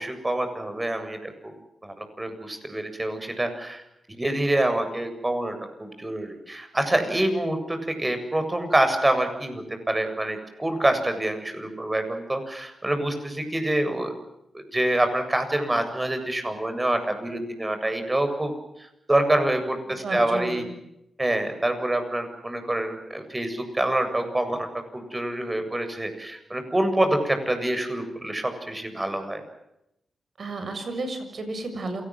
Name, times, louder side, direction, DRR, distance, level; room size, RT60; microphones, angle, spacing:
voice 1, 0.0-1.5 1.8-3.8 4.2-14.1 14.5-18.5 19.1-20.6 21.2-24.7 24.9-29.4, right 1 dB, 20° right, 7 dB, 7.7 m, -26 dB
voice 2, 20.0-20.7 30.4-32.0, right 2 dB, 60° right, 8 dB, 7.0 m, -32 dB
28.0 x 19.5 x 7.8 m, 0.83 s
supercardioid pair, 45°, 0 cm